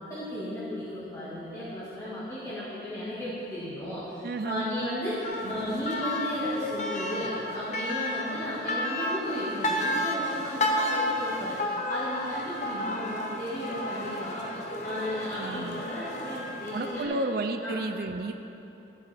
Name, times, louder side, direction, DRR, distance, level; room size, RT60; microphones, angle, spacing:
voice 1, 0.0-17.1 17.6-17.7, equal, 20° left, -12 dB, 1.6 m, -35 dB
voice 2, 4.2-4.7 5.4-5.8 15.4-15.8 16.7-18.3, right 2 dB, 55° right, 6 dB, 0.4 m, -32 dB
sound 1, 5.2-17.0, left 1 dB, 40° left, 0.8 m, -32 dB
13.5 x 7.4 x 3.4 m, 3.0 s
head